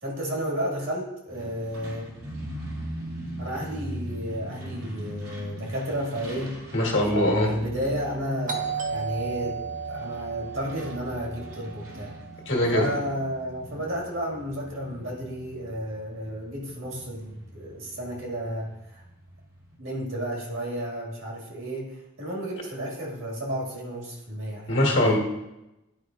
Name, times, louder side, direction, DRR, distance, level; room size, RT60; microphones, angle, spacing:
voice 1, 0.0-2.1 3.4-6.5 7.1-9.6 9.9-12.1 12.7-19.0 19.8-25.2, equal, 65° right, -2 dB, 2.0 m, -32 dB
Truck, 1.3-19.7, equal, 85° right, 2.3 m, -40 dB
voice 2, 6.7-7.5 12.5-12.9 24.7-25.2, left 1 dB, 60° left, -1 dB, 1.5 m, -22 dB
Doorbell, 8.5-13.1, right 6 dB, 35° right, 0.8 m, -35 dB
9.9 x 4.9 x 2.4 m, 0.92 s
head